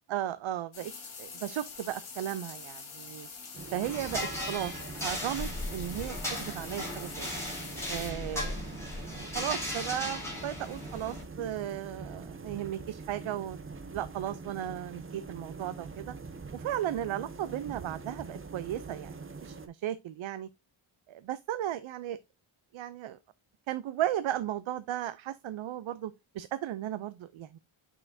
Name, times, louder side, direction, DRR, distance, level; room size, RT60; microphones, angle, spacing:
voice 1, 0.1-0.9 1.2-3.3 3.7-7.3 7.9-8.6 9.3-13.6 13.9-16.1 16.5-20.5 21.1-22.2 22.7-23.2 23.7-27.6, right 12 dB, 70° right, 0.6 m, -35 dB
sound 1, 0.7-8.1, left 5 dB, 75° left, 3.2 m, -45 dB
sound 2, 3.5-19.7, right 4 dB, 25° right, 0.6 m, -44 dB
sound 3, 3.8-11.2, left 1 dB, 5° left, 3.2 m, -37 dB
6.4 x 5.6 x 2.6 m
wide cardioid pair, 165°, 50 cm